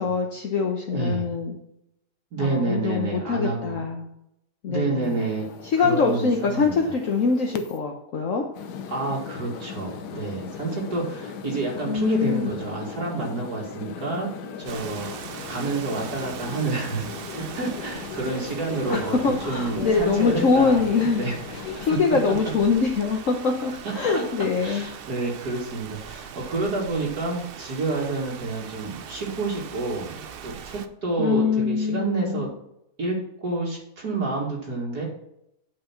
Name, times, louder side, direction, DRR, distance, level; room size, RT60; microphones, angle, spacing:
voice 1, 0.0-1.5 2.4-4.1 4.6-5.2 5.6-8.4 11.9-12.5 18.9-21.2 21.8-24.8 31.2-32.5, left 5 dB, 55° left, 2 dB, 1.3 m, -23 dB
voice 2, 0.9-1.3 2.3-3.8 4.7-5.5 5.8-6.8 8.9-14.3 14.6-17.1 17.3-19.2 19.5-21.9 23.8-24.2 24.6-30.1 30.4-32.5 33.0-33.2 33.4-35.1, right 3 dB, 65° right, -3 dB, 2.4 m, -29 dB
sound 1, 5.0-7.8 8.5-21.9, left 7 dB, 80° left, 1.4 m, -38 dB
Rain, 14.6-30.9, right 7 dB, 85° right, 0.5 m, -40 dB
9.2 x 5.5 x 5.8 m, 0.80 s
omnidirectional pair, 1.8 m